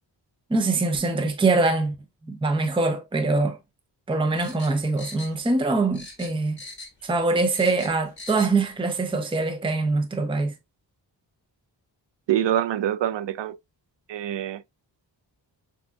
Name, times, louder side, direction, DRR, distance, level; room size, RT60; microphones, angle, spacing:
voice 1, 0.5-1.9 2.3-3.6 4.1-6.6 7.0-10.5, right 3 dB, 10° right, 0.6 m, -23 dB
sound 1, 4.4-5.7 5.9-7.1 7.3-8.5 8.9-9.0, left 2 dB, 25° left, 2.2 m, -42 dB
voice 2, 12.3-13.6 14.1-14.6, right 11 dB, 75° right, 0.5 m, -25 dB
6.0 x 2.7 x 2.2 m
wide cardioid pair, 135°, 44 cm